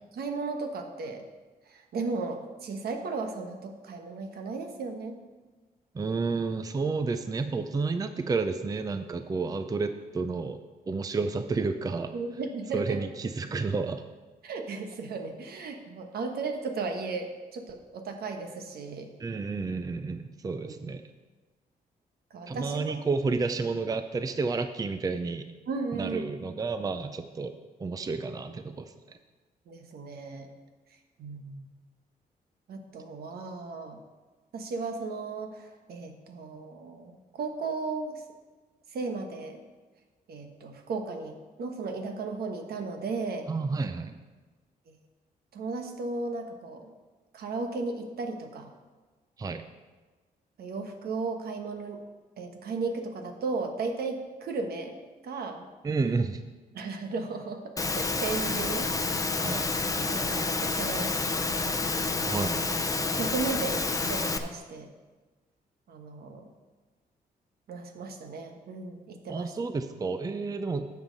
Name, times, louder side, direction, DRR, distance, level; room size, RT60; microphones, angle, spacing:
voice 1, 0.1-1.2 1.7-5.2 12.1-13.0 14.4-19.1 20.6-20.7 22.3-23.0 25.7-26.3 29.7-30.5 31.2-31.6 32.7-34.0 34.5-38.2 38.9-39.6 40.3-43.5 44.9-45.0 45.5-46.9 47.3-48.7 50.6-52.0 52.4-55.0 55.2-55.7 56.7-58.9 60.1-61.8 63.1-64.9 65.9-66.5 67.7-69.5, right 4 dB, 70° right, 5 dB, 1.2 m, -35 dB
voice 2, 5.9-12.1 12.7-14.0 19.2-21.0 22.5-25.5 25.9-27.5 27.8-29.2 43.5-44.1 49.4-49.6 55.8-56.4 59.4-59.7 62.2-62.7 69.3-70.9, right 4 dB, 20° right, 9 dB, 0.5 m, -31 dB
Engine / Mechanisms, 57.8-64.4, left 3 dB, 20° left, 0.6 m, -29 dB
11.5 x 7.2 x 4.0 m, 1.3 s
cardioid pair, 105°, 16 cm